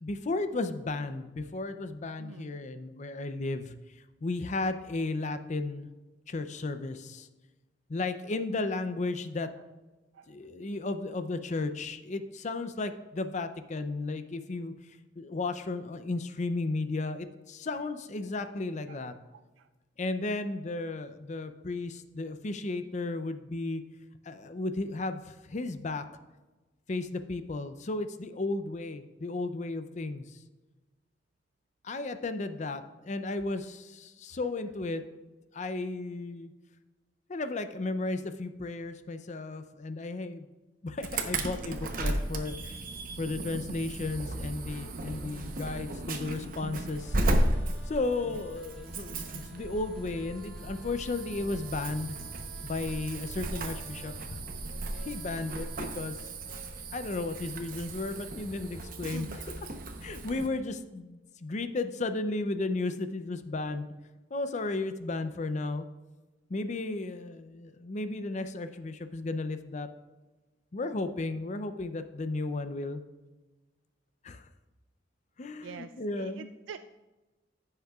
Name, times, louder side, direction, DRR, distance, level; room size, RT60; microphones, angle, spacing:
voice 1, 0.0-3.7 4.2-5.9 6.3-7.3 7.9-9.5 10.3-14.7 15.2-19.1 20.0-23.8 24.2-26.0 26.9-30.4 31.8-35.0 35.5-36.5 37.3-40.5 40.8-42.8 43.2-47.2 47.9-52.2 52.6-54.4 54.9-56.2 56.9-59.5 60.0-63.9 64.3-65.9 66.5-69.9 70.7-73.0 74.2-74.5 75.4-76.5, left 2 dB, 40° left, 10 dB, 0.5 m, -34 dB
voice 2, 2.2-2.6 10.1-10.3 18.9-19.0 19.3-19.7 59.1-59.4 75.6-76.8, right 6 dB, 85° right, 10 dB, 0.3 m, -45 dB
Insect / Alarm, 41.0-60.5, right 1 dB, 50° right, 0.8 m, -35 dB
sound 1, 47.0-55.8, right 1 dB, 5° left, 2.5 m, -54 dB
15.0 x 6.5 x 2.4 m, 1.2 s
head